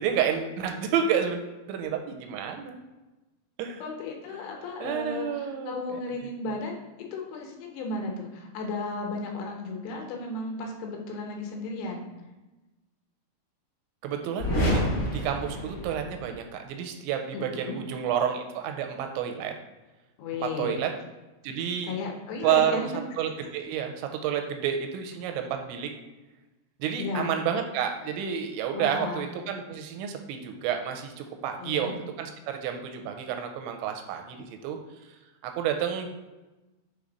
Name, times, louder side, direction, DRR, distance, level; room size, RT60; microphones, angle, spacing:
voice 1, 0.0-2.8 3.6-3.8 4.3-4.5 4.8-6.0 14.0-19.5 20.4-20.9 21.4-22.0 22.4-22.8 23.2-25.9 26.8-34.8 35.4-36.1, right 8 dB, 85° right, 5 dB, 2.8 m, -30 dB
voice 2, 3.8-6.8 7.1-12.1 17.3-17.8 20.2-20.8 21.9-22.9 27.0-27.3 28.7-29.3 31.6-31.9, left 3 dB, 80° left, 1 dB, 3.3 m, -34 dB
sound 1, 14.4-16.4, equal, 50° left, 2.7 m, -28 dB
7.4 x 3.4 x 3.9 m, 1.1 s
omnidirectional pair, 5.7 m